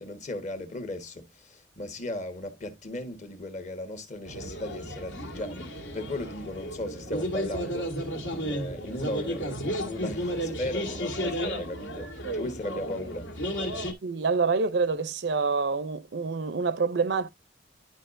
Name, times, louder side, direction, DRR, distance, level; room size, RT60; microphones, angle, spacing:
voice 1, 0.0-7.9 8.3-13.3, left 1 dB, 40° left, 1.3 m, -36 dB
sound 1, 4.3-13.9, equal, 80° left, 2.0 m, -33 dB
voice 2, 14.0-17.3, right 4 dB, 60° right, 0.5 m, -26 dB
11.0 x 4.8 x 2.5 m
head